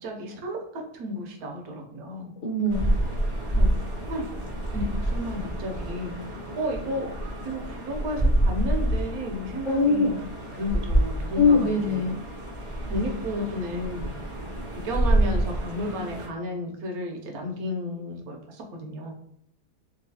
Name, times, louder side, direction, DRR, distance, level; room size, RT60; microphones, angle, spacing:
voice 1, 0.0-2.3 3.5-3.7 4.1-4.3 4.7-6.2 6.6-7.1 7.4-10.2 10.5-12.1 12.9-14.1 14.7-19.1, left 1 dB, 70° right, 3 dB, 1.1 m, -32 dB
voice 2, 2.4-2.9 9.6-10.1 11.3-12.2, left 3 dB, 60° left, -5 dB, 0.9 m, -22 dB
sound 1, 2.7-16.3, right 1 dB, 35° right, 0.5 m, -28 dB
3.0 x 2.6 x 2.7 m, 0.74 s
omnidirectional pair, 1.7 m